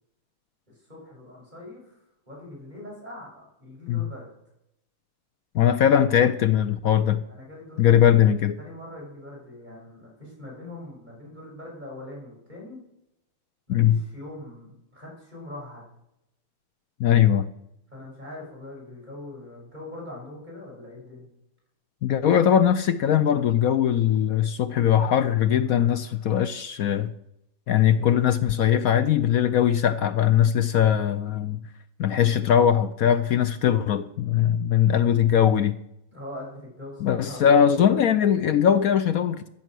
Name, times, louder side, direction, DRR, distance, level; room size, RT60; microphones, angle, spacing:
voice 1, 0.9-2.0 2.3-4.3 7.3-8.2 8.6-12.8 13.7-15.8 17.9-21.3 36.1-37.6, left 1 dB, 20° right, 6.2 m, -42 dB
voice 2, 5.5-7.2 7.8-8.6 13.7-14.0 17.0-17.5 22.0-27.1 27.7-31.6 32.0-35.8 37.0-39.5, left 9 dB, 70° left, 0.8 m, -20 dB
15.0 x 8.6 x 6.2 m
omnidirectional pair, 2.2 m